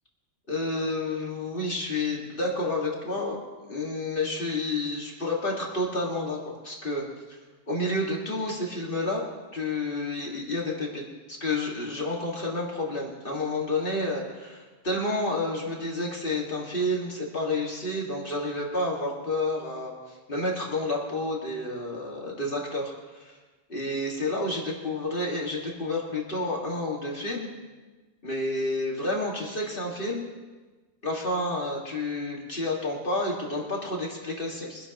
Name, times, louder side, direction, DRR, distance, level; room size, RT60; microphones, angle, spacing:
voice 1, 0.5-3.4 3.7-6.4 6.6-7.4 7.7-9.2 9.5-11.0 11.3-23.4 23.7-27.5 28.2-30.3 31.0-34.9, left 2 dB, 50° left, -2 dB, 2.3 m, -30 dB
23.5 x 11.5 x 3.0 m, 1.3 s
omnidirectional pair, 1.2 m